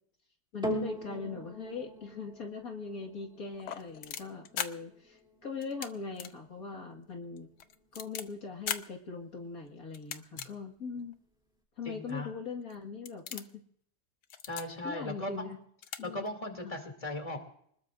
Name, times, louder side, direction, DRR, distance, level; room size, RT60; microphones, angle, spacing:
voice 1, 0.5-7.5 7.9-11.1 11.8-13.6 14.8-15.6 16.0-16.3 16.6-16.7, left 4 dB, 60° left, 1 dB, 2.2 m, -41 dB
sound 1, 0.6-9.2 9.9-10.0, equal, 5° right, 2.8 m, -43 dB
sound 2, 3.5-4.7 5.6-5.9 6.2-6.3 6.7-6.8 7.4-8.2 8.7-8.8 9.9-10.5 11.1-11.2 12.1-12.2 12.6-12.8 13.1-13.5 14.2-14.6 15.5-15.6 15.8-16.0 16.3-16.4, left 9 dB, 90° left, 1.5 m, -38 dB
voice 2, 11.8-12.3 14.5-15.5 16.0-17.4, left 1 dB, 20° left, 4 dB, 2.7 m, -38 dB
25.5 x 20.5 x 2.5 m, 0.65 s
omnidirectional pair, 1.7 m